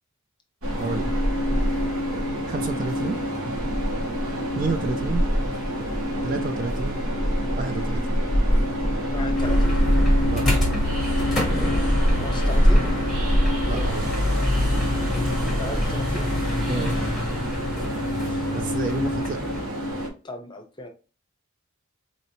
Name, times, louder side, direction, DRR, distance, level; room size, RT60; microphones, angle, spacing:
Train, 0.6-20.1, equal, 75° right, 1.3 m, -24 dB
voice 1, 0.8-1.1 2.5-3.2 4.5-5.2 6.2-7.0 7.6-8.2 10.2-10.5 13.6-14.1 16.7-17.0 18.5-19.5, right 3 dB, 35° right, 7 dB, 0.4 m, -30 dB
voice 2, 9.1-9.8 12.2-12.9 15.6-16.3 18.1-18.4 20.2-20.9, left 1 dB, 20° left, 5 dB, 0.7 m, -36 dB
sound 1, 9.4-19.6, left 1 dB, ahead, 1.1 m, -27 dB
4.1 x 3.0 x 2.7 m, 0.33 s
head